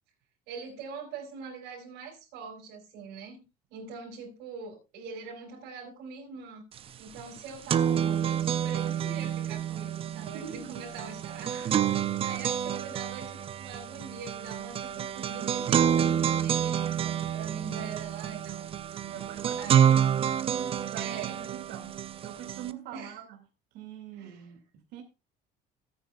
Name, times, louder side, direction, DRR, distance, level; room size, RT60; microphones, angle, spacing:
voice 1, 0.5-3.4 3.7-6.6 7.0-18.7 19.6-20.3 20.9-21.4 22.9-23.2 24.2-24.5, right 5 dB, 85° right, 4.9 m, -43 dB
sound 1, 6.8-6.9 7.2-22.7, right 9 dB, 30° right, 0.5 m, -28 dB
voice 2, 10.2-10.9 19.0-19.9 20.6-23.4 23.7-25.0, right 9 dB, 70° right, 2.3 m, -44 dB
17.0 x 9.3 x 2.3 m
cardioid pair, 145°, 18 cm